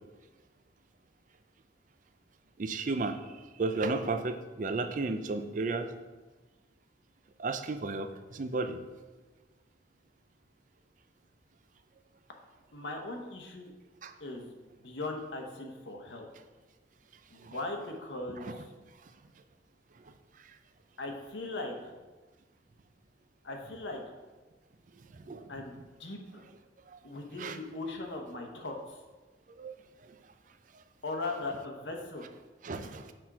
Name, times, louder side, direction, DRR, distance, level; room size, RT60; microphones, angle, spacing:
voice 1, 2.6-5.9 7.4-8.8 14.0-14.1 17.4-17.6 18.3-18.6 20.4-20.5 25.1-25.5 26.9-27.0 27.4-27.6 29.5-29.8 30.0-30.1 32.6-33.1, right 3 dB, 45° right, 9 dB, 0.4 m, -34 dB
voice 2, 12.7-13.7 14.2-16.3 17.3-18.6 21.0-21.7 23.4-24.0 25.5-26.4 27.0-29.0 31.0-32.3, left 2 dB, 75° left, 2 dB, 1.0 m, -39 dB
6.1 x 4.4 x 4.7 m, 1.3 s
head